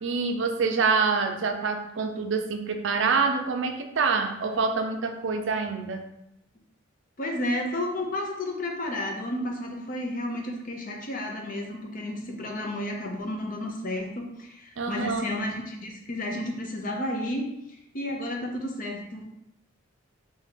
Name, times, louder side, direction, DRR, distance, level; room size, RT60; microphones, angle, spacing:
voice 1, 0.0-6.0 14.8-15.3, right 4 dB, 65° right, 5 dB, 0.5 m, -26 dB
voice 2, 7.2-19.2, left 1 dB, 40° left, 1 dB, 0.7 m, -32 dB
3.6 x 2.8 x 4.4 m, 0.84 s
head